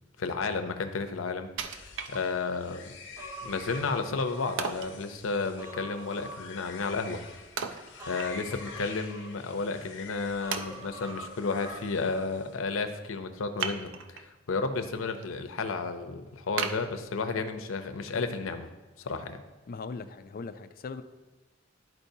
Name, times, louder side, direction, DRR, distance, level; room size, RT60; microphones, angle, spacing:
voice 1, 0.2-2.9 3.4-7.2 8.1-18.7 19.0-19.4, left 4 dB, 90° left, 7 dB, 0.6 m, -32 dB
Wood, 1.6-2.7 3.2-3.3 4.6-5.0 7.6-8.7 9.0-9.1 9.8-9.9 10.5-11.2 13.6-14.3 14.8-15.3 15.7-15.8 16.6-17.6 18.1-18.2, right 6 dB, 65° right, 0.5 m, -36 dB
sound 1, 1.7-12.6, left 5 dB, 65° left, 1.0 m, -48 dB
Human voice, 3.2-5.0 5.3-7.3 8.0-9.8 10.4-12.3 12.6-12.7, right 1 dB, 15° right, 0.8 m, -45 dB
voice 2, 19.7-21.0, left 4 dB, 50° left, 10 dB, 0.4 m, -39 dB
11.5 x 4.5 x 2.7 m, 1.1 s
head